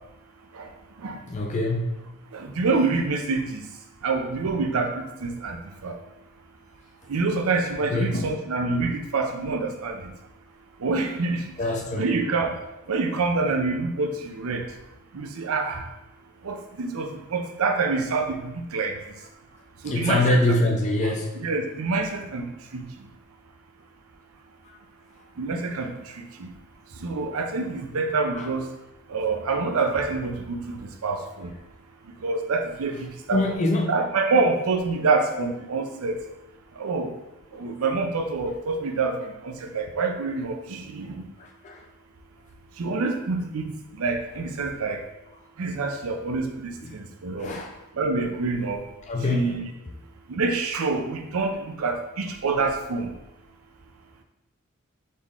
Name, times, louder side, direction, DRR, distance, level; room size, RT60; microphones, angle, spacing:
voice 1, 1.3-2.1 7.8-8.3 11.6-12.1 19.8-21.3 28.3-28.5 33.3-34.0 37.5-37.6 41.4-41.8 46.8-47.0 47.4-47.8 49.1-49.4, left 2 dB, 35° left, 1 dB, 0.4 m, -25 dB
voice 2, 2.3-3.7 4.0-5.6 5.8-6.0 7.1-10.1 10.8-11.5 12.0-12.5 12.9-14.7 15.1-15.9 16.4-19.0 19.8-20.4 21.0-22.8 25.4-26.5 27.0-28.7 29.1-31.5 32.2-33.4 33.9-36.2 36.8-37.1 37.5-41.2 42.8-43.7 44.0-45.0 45.6-47.5 48.0-48.8 49.3-49.7 50.3-53.1, right 3 dB, 85° right, 5 dB, 0.6 m, -26 dB
4.2 x 3.0 x 3.5 m, 0.95 s
head